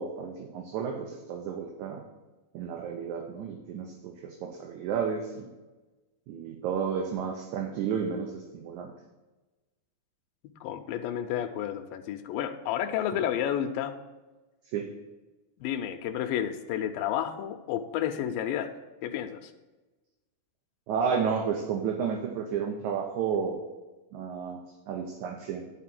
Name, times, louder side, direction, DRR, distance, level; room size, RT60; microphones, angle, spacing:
voice 1, 0.0-2.0 2.5-5.5 6.3-8.9 14.7-14.9 20.9-23.7 24.1-24.6 24.9-25.6, right 6 dB, 70° right, 2 dB, 2.0 m, -32 dB
voice 2, 10.6-14.0 15.6-18.7 19.0-19.5, left 10 dB, 85° left, 5 dB, 2.4 m, -31 dB
11.0 x 4.1 x 7.4 m, 1.2 s
omnidirectional pair, 4.0 m